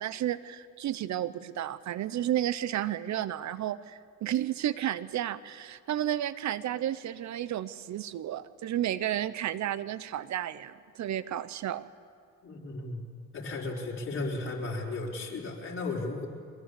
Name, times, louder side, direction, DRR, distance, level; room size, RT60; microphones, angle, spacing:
voice 1, 0.0-11.8, right 12 dB, 70° right, 16 dB, 0.8 m, -32 dB
voice 2, 12.4-13.0 13.3-16.3, left 2 dB, 40° left, -3 dB, 4.7 m, -35 dB
23.0 x 22.0 x 8.4 m, 2.3 s
cardioid pair, 90°, 30 cm